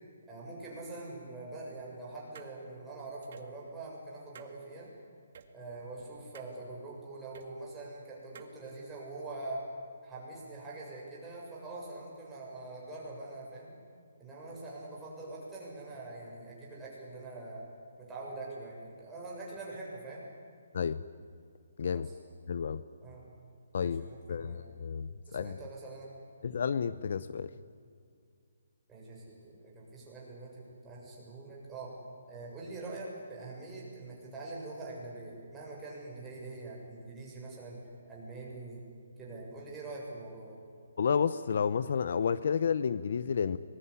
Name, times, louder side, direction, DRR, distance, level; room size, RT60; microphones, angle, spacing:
voice 1, 0.3-4.9 5.5-9.6 10.0-13.7 14.2-17.6 18.0-20.3 21.9-22.2 23.0-23.3 23.8-24.6 25.3-26.1 28.9-31.9 32.3-37.8 38.1-38.8 39.2-40.6, right 2 dB, 10° right, -5 dB, 7.2 m, -44 dB
sound 1, 2.3-2.5 3.2-3.5 4.3-4.5 5.3-5.5 6.3-6.6 7.3-7.5 8.3-8.5, right 7 dB, 45° right, 2.1 m, -51 dB
voice 2, 22.5-22.8 23.7-25.6 26.4-27.5 41.0-43.6, left 6 dB, 55° left, 15 dB, 0.8 m, -31 dB
25.5 x 21.0 x 9.9 m, 2.3 s
hypercardioid pair, 165°, 0 cm